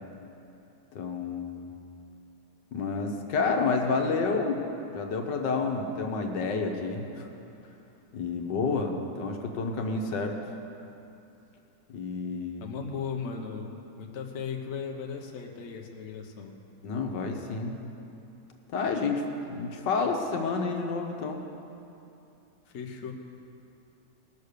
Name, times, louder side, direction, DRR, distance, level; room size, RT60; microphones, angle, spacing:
voice 1, 1.0-1.7 2.7-4.6 4.9-7.3 8.1-10.4 11.9-12.7 16.8-17.8 18.7-21.4, left 4 dB, 75° left, 3 dB, 1.7 m, -29 dB
voice 2, 12.6-16.6 22.7-23.1, left 6 dB, 45° left, 2 dB, 1.1 m, -37 dB
19.0 x 6.6 x 6.7 m, 2.9 s
omnidirectional pair, 1.9 m